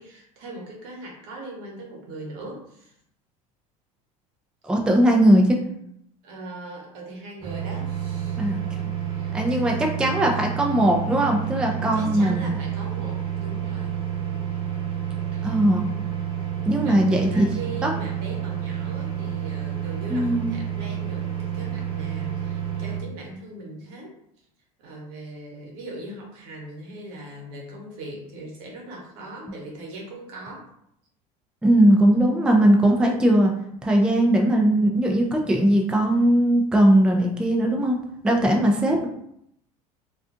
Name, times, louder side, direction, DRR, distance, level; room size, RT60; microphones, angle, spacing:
voice 1, 0.0-2.9 6.2-8.4 9.0-9.6 11.6-14.0 15.3-15.6 16.8-24.1 24.8-30.7, right 2 dB, 70° right, -2 dB, 1.0 m, -40 dB
voice 2, 4.6-5.6 8.4-8.6 9.3-12.5 15.4-15.8 16.7-17.3 17.8-17.9 20.1-20.5 31.6-33.5 33.8-38.0 38.2-39.1, right 1 dB, 5° right, 1 dB, 0.4 m, -19 dB
sound 1, 7.4-23.0, right 9 dB, 30° right, 0.9 m, -29 dB
2.4 x 2.3 x 2.5 m, 0.73 s
supercardioid pair, 90°, 19 cm